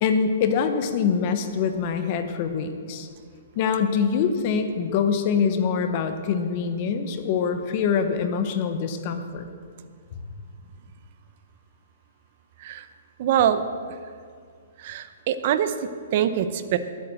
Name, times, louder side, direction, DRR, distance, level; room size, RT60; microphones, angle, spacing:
voice 1, 0.0-3.1 3.6-9.5, left 6 dB, 35° left, 8 dB, 0.9 m, -24 dB
voice 2, 13.2-13.6 14.8-15.7 16.1-16.8, right 10 dB, 45° right, 11 dB, 0.7 m, -23 dB
10.5 x 8.2 x 7.6 m, 2.2 s
hypercardioid pair, 160°, 0 cm